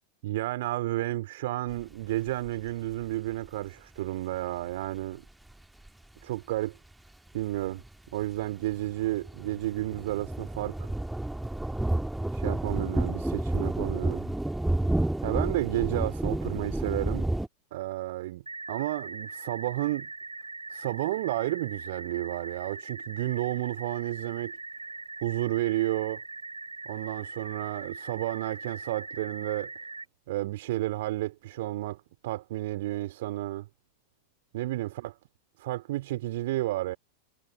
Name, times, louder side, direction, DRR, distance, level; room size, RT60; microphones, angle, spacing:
voice 1, 0.2-5.2 6.2-6.8 7.3-7.8 8.1-10.9 12.3-14.3 15.2-17.3 17.7-18.4 18.7-20.1 20.7-24.5 25.2-26.2 26.8-29.7 30.3-33.7 34.5-35.1 35.6-37.0, right 16 dB, 55° right, 3.1 m, -31 dB
sound 1, 1.7-2.5 3.0-3.1 3.4-3.5 5.9-6.0 7.7-7.9 8.2-17.5, right 1 dB, 5° right, 1.9 m, -30 dB
sound 2, 18.5-30.1, right 3 dB, 80° right, 7.5 m, -41 dB
figure-of-eight pair, 90°, 0 cm